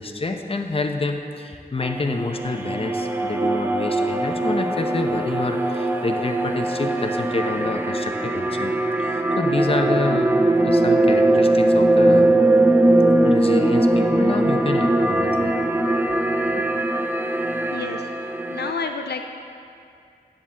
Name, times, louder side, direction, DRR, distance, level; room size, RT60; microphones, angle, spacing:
voice 1, 0.0-8.7 9.0-10.3 10.6-12.3 13.2-15.5 16.6-16.7, left 3 dB, 35° left, 5 dB, 0.6 m, -28 dB
sound 1, 1.8-18.7, right 1 dB, 10° right, 0.5 m, -20 dB
voice 2, 18.5-19.3, left 5 dB, 75° left, 6 dB, 0.4 m, -29 dB
9.7 x 7.2 x 3.7 m, 2.4 s
wide cardioid pair, 55°, 17 cm